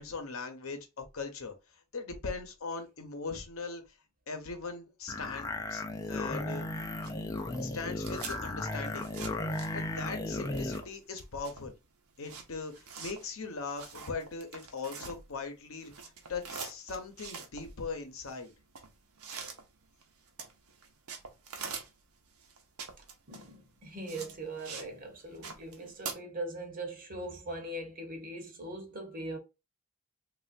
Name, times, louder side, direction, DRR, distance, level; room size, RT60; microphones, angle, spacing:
voice 1, 0.0-1.5 1.9-3.8 4.3-5.8 6.1-6.7 7.6-9.1 9.7-11.7 12.2-18.5, left 4 dB, 70° left, 0.8 m, -40 dB
sound 1, 5.1-10.9, left 2 dB, 15° left, 0.3 m, -35 dB
sound 2, 6.8-10.1 10.4-15.5 15.8-24.9 25.2-26.1, right 5 dB, 90° right, 0.8 m, -45 dB
voice 2, 23.3-29.4, right 1 dB, 40° right, 0.9 m, -41 dB
3.3 x 2.4 x 2.5 m
head